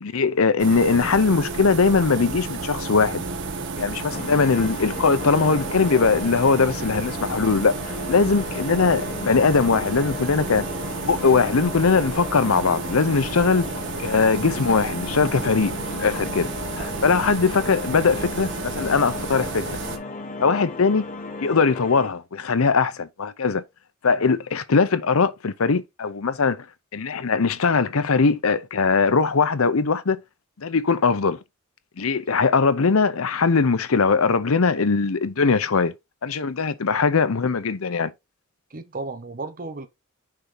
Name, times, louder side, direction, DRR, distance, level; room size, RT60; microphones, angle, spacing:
voice 1, 0.0-3.3 3.8-10.6 11.0-13.7 14.0-15.7 16.0-19.8 20.4-21.0 21.4-23.6 24.0-26.6 26.9-30.2 30.6-31.4 32.0-35.9 36.2-38.1, left 4 dB, 65° left, 0.7 m, -21 dB
sound 1, 0.6-20.0, right 3 dB, 60° right, 1.3 m, -32 dB
sound 2, 4.1-22.1, left 3 dB, 35° left, 1.0 m, -36 dB
voice 2, 38.7-39.9, right 3 dB, 40° right, 0.9 m, -34 dB
6.2 x 4.2 x 3.9 m
head